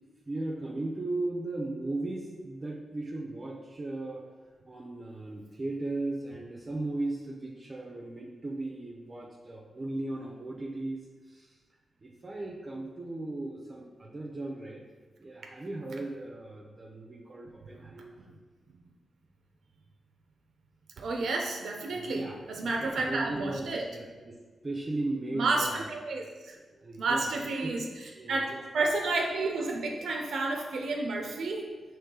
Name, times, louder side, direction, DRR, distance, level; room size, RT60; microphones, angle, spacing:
voice 1, 0.3-4.2 4.6-11.6 12.0-14.8 15.2-18.2 21.9-25.9 26.6-27.3 27.6-27.9 28.1-28.6, right 2 dB, 35° right, -2 dB, 0.6 m, -37 dB
voice 2, 21.0-23.8 25.3-26.6 27.0-27.8 28.3-31.7, right 3 dB, 85° right, 2 dB, 0.5 m, -31 dB
4.6 x 3.1 x 3.7 m, 1.3 s
cardioid pair, 75°, 0 cm